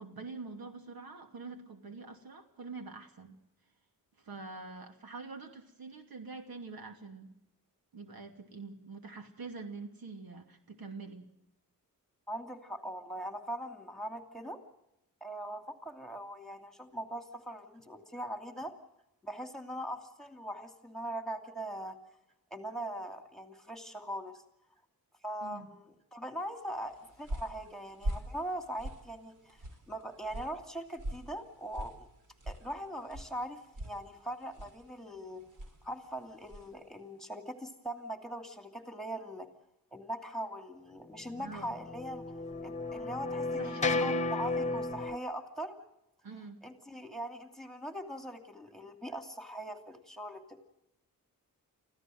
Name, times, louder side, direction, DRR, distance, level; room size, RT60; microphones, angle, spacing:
voice 1, 0.0-3.4 4.2-7.3 7.9-11.3 25.4-25.7 41.4-41.8 43.6-44.1 46.2-46.6, right 4 dB, 85° right, 5 dB, 2.7 m, -45 dB
voice 2, 12.3-14.6 15.2-18.7 19.2-22.0 22.5-24.4 25.2-32.1 32.5-35.4 35.8-39.5 39.9-42.2 42.6-45.8 46.6-50.6, right 1 dB, ahead, 6 dB, 2.6 m, -41 dB
sound 1, 26.7-36.8, right 1 dB, 60° right, 3.4 m, -44 dB
sound 2, 41.6-45.2, left 3 dB, 20° left, 1.2 m, -33 dB
25.0 x 15.0 x 7.8 m, 0.85 s
wide cardioid pair, 100°, 35 cm